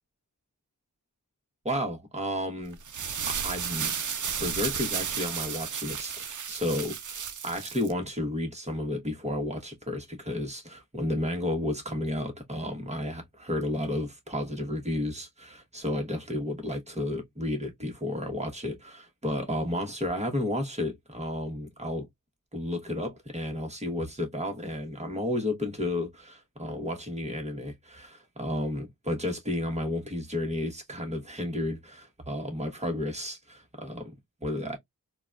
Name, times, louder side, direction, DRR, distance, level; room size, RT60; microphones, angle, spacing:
voice 1, 1.6-2.8 3.3-3.9 4.4-22.1 22.5-34.1 34.4-34.8, left 1 dB, 20° right, 1.2 m, -32 dB
sound 1, 2.7-7.9, right 7 dB, 60° right, 0.5 m, -33 dB
3.9 x 2.3 x 2.4 m
wide cardioid pair, 75°, 35 cm